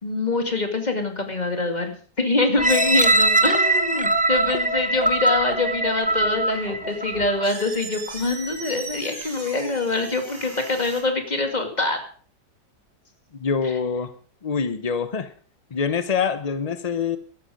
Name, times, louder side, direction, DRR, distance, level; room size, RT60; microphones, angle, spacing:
voice 1, 0.0-12.0 13.6-13.7, left 3 dB, 25° left, 5 dB, 2.4 m, -25 dB
sound 1, 2.6-7.5 8.1-8.2, right 2 dB, 10° right, 0.4 m, -21 dB
sound 2, 6.0-11.0, right 2 dB, 90° right, 5.9 m, -39 dB
voice 2, 13.3-14.1 14.4-15.3 15.7-17.2, left 6 dB, 50° left, 11 dB, 0.4 m, -25 dB
14.5 x 12.0 x 5.2 m, 0.42 s
omnidirectional pair, 1.8 m